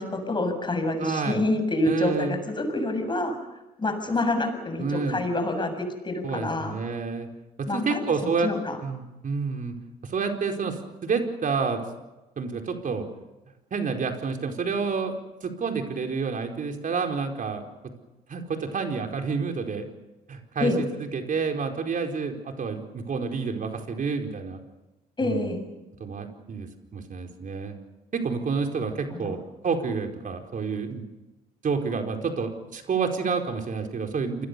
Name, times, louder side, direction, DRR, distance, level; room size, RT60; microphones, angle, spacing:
voice 1, 0.0-3.4 3.8-5.8 6.0-6.8 7.7-8.0 8.4-8.8 20.6-20.8 25.2-25.6 29.2-29.4, left 2 dB, 25° left, 7 dB, 7.1 m, -27 dB
voice 2, 1.0-1.4 1.8-2.3 4.8-5.2 6.2-7.3 7.6-8.5 8.8-9.7 10.0-11.8 12.4-13.1 13.7-15.1 15.4-17.6 18.3-19.9 20.3-24.6 25.2-25.6 26.0-27.8 28.1-31.1 31.6-34.5, right 5 dB, 45° right, 4 dB, 4.6 m, -29 dB
27.5 x 22.0 x 6.9 m, 1.0 s
supercardioid pair, 65°, 19 cm